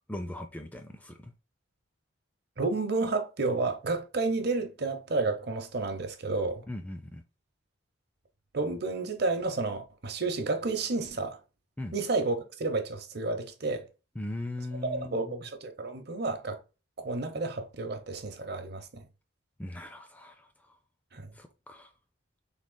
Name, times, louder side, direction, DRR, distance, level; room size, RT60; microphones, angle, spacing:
voice 1, 0.1-1.3 6.7-7.2 11.8-11.9 14.2-15.4 19.6-20.5 21.3-21.9, left 1 dB, 5° left, 0.4 m, -39 dB
voice 2, 2.6-6.6 8.5-11.4 11.9-13.9 14.8-16.6 17.0-19.0 21.1-21.3, right 3 dB, 50° right, 0.8 m, -31 dB
6.2 x 3.6 x 2.2 m
head